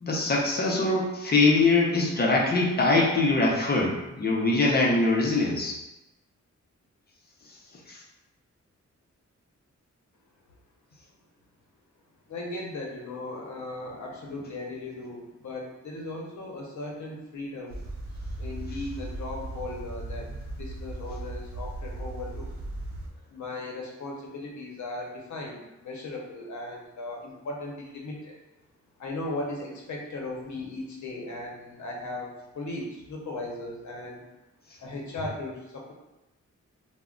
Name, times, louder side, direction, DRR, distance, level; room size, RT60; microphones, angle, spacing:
voice 1, 0.0-5.8 7.9-8.0, left 3 dB, 35° left, -2 dB, 0.5 m, -23 dB
voice 2, 12.3-17.8 18.4-20.3 20.6-22.5 23.3-28.3 29.0-34.3 34.8-35.9, left 2 dB, 75° left, -1 dB, 0.7 m, -37 dB
sound 1, 17.7-23.1, right 2 dB, 50° right, 0.4 m, -37 dB
2.2 x 2.1 x 3.6 m, 0.97 s
wide cardioid pair, 145°, 29 cm